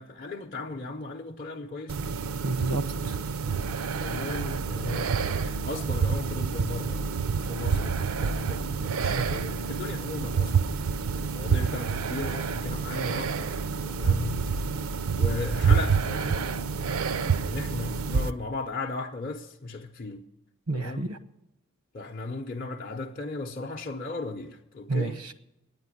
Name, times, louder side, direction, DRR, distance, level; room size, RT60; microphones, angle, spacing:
voice 1, 0.0-2.0 4.0-7.0 7.4-13.5 13.8-14.5 15.1-20.2 20.7-21.1 21.9-25.2, left 3 dB, 40° left, 0.6 m, -36 dB
sound 1, 1.9-18.3, right 5 dB, 65° right, 0.5 m, -28 dB
voice 2, 2.4-3.2 20.7-21.2 24.9-25.3, right 3 dB, 90° right, 0.9 m, -30 dB
9.8 x 9.4 x 9.8 m
head